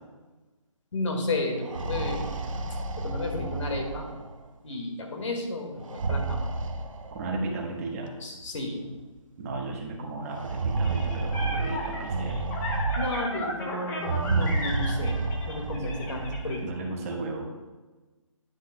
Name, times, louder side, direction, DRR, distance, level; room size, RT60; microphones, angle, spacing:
voice 1, 0.9-2.6 3.0-4.1 4.6-6.5 8.2-8.9 13.0-16.6, left 2 dB, 60° left, 2 dB, 1.9 m, -32 dB
sound 1, 1.5-4.4 5.8-7.5 8.5-8.6 8.9-9.0 10.3-13.4 14.0-16.6, right 3 dB, 75° right, 0.9 m, -30 dB
voice 2, 7.1-8.1 9.4-12.4 15.7-15.8 16.6-17.5, right 3 dB, 25° right, 0 dB, 1.2 m, -34 dB
sound 2, 10.8-16.6, left 1 dB, 10° left, 0.6 m, -35 dB
9.8 x 8.3 x 2.2 m, 1.2 s
hypercardioid pair, 155°, 17 cm